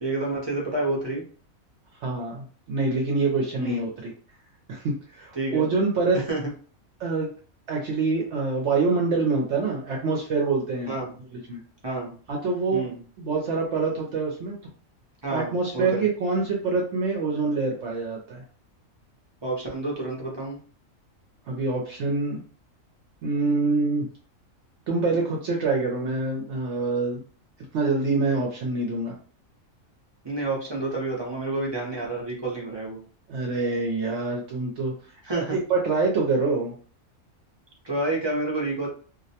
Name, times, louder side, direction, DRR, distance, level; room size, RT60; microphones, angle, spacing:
voice 1, 0.0-1.2 3.6-3.8 5.4-5.7 6.3-6.4 10.9-11.1 11.8-12.1 12.7-13.0 15.2-16.0 19.4-20.6 30.2-33.0 35.2-35.6 37.8-38.9, right 2 dB, 30° right, -3 dB, 0.5 m, -29 dB
voice 2, 2.0-4.1 4.7-6.2 7.0-7.3 7.7-10.9 11.3-11.6 12.3-12.8 13.2-14.6 15.3-18.4 21.5-22.4 23.2-24.1 24.9-27.2 27.7-29.1 33.3-34.9 35.3-36.7, right 3 dB, 65° right, -1 dB, 0.8 m, -25 dB
2.4 x 2.1 x 2.7 m, 0.42 s
omnidirectional pair, 1.4 m